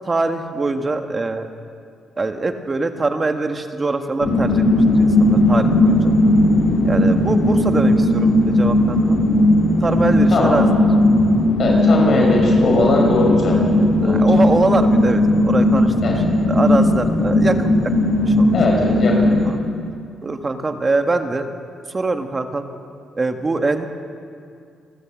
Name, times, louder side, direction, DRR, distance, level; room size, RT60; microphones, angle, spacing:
voice 1, 0.0-1.5 2.2-4.6 4.9-6.1 6.8-9.2 9.8-10.6 14.0-16.1 16.5-17.9 18.2-18.5 19.4-19.6 20.2-21.4 21.9-22.6 23.1-23.9, right 3 dB, 30° right, 6 dB, 1.7 m, -23 dB
sound 1, 4.2-19.4, left 1 dB, 85° left, 4.3 m, -16 dB
voice 2, 11.6-13.6 14.0-14.4 16.0-16.2 18.5-19.1 19.5-19.7, left 2 dB, 55° left, -1 dB, 5.5 m, -19 dB
29.0 x 13.0 x 7.5 m, 2.3 s
cardioid pair, 90°, 0 cm